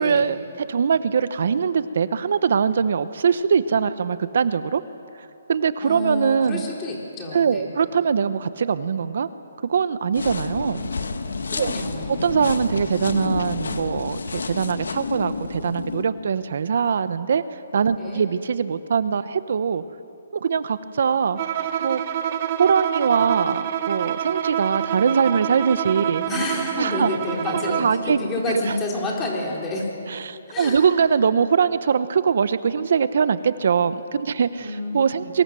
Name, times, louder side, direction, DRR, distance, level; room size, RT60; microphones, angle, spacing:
voice 1, 0.0-4.8 5.2-6.7 7.3-9.3 9.6-10.9 11.6-11.7 12.2-19.8 20.3-21.4 21.8-22.0 22.6-26.2 26.8-27.1 27.8-28.2 28.7-28.8 30.1-35.4, right 6 dB, 55° right, 13 dB, 0.9 m, -22 dB
voice 2, 5.8-7.7 11.5-12.2 17.9-18.2 26.3-29.9 30.5-30.8 34.6-35.3, left 2 dB, 15° left, -2 dB, 4.1 m, -29 dB
sound 1, 10.1-16.0, left 4 dB, 85° left, 2.0 m, -30 dB
Bowed string instrument, 21.4-28.0, right 10 dB, 35° right, 1.3 m, -27 dB
27.5 x 24.0 x 7.7 m, 2.6 s
hypercardioid pair, 165°, 0 cm